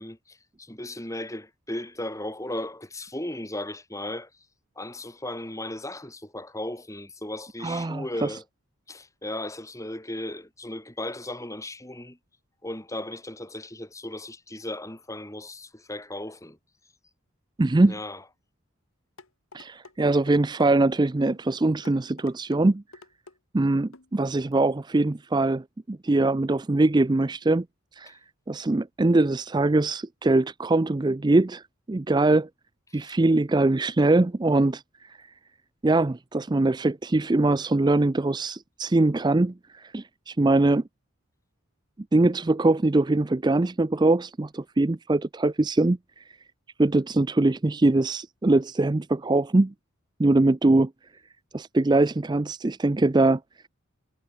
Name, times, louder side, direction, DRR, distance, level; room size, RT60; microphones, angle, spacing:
voice 1, 0.0-4.3 4.8-8.4 8.9-12.2 12.6-16.6 17.8-18.2 28.1-28.2 32.9-33.1, left 1 dB, 15° left, 3.4 m, -36 dB
voice 2, 7.6-8.4 17.6-18.0 19.5-22.8 23.5-27.7 28.0-28.2 28.5-32.5 32.9-35.3 35.8-40.8 42.1-46.4 46.8-49.7 50.2-50.9 51.5-53.7, right 2 dB, 20° right, 0.4 m, -22 dB
sound 1, 19.2-20.0 20.3-20.7 21.3-21.4 21.8-22.6 22.9-23.4 23.9-24.1 24.5-24.6, left 3 dB, 75° left, 2.1 m, -49 dB
head